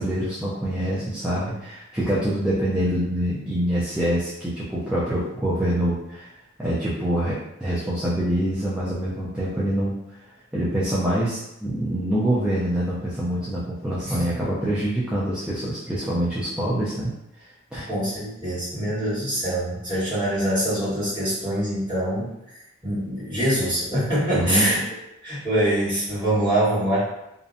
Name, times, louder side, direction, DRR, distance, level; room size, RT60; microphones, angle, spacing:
voice 1, 0.0-6.3 6.6-10.0 10.5-17.1 17.7-17.9 24.3-24.7, right 1 dB, 5° right, -10 dB, 0.4 m, -25 dB
voice 2, 17.9-22.3 22.8-24.8 25.2-27.0, right 1 dB, 20° right, -12 dB, 1.4 m, -24 dB
2.5 x 2.1 x 2.5 m, 0.85 s
head